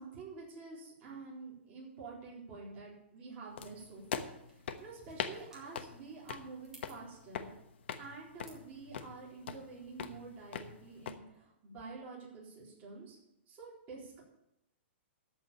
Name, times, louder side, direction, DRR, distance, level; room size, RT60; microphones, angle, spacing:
voice 1, 0.0-7.5 8.0-13.2 13.5-14.2, right 4 dB, 25° right, -5 dB, 4.0 m, -48 dB
sound 1, 3.6-11.2, left 7 dB, 70° left, 1.1 m, -44 dB
sound 2, 3.8-8.8, right 1 dB, 10° right, 2.1 m, -63 dB
13.5 x 5.0 x 8.5 m, 0.82 s
hypercardioid pair, 160°, 6 cm